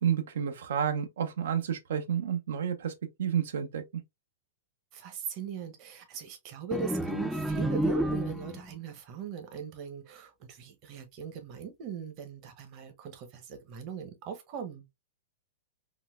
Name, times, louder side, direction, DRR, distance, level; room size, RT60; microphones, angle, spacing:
voice 1, 0.0-2.9 3.2-4.0, right 8 dB, 80° right, 0.6 m, -30 dB
voice 2, 4.9-14.9, right 6 dB, 40° right, 0.9 m, -40 dB
sound 1, 6.7-8.7, right 1 dB, ahead, 0.3 m, -30 dB
3.8 x 2.2 x 2.3 m
hypercardioid pair, 135°, 0 cm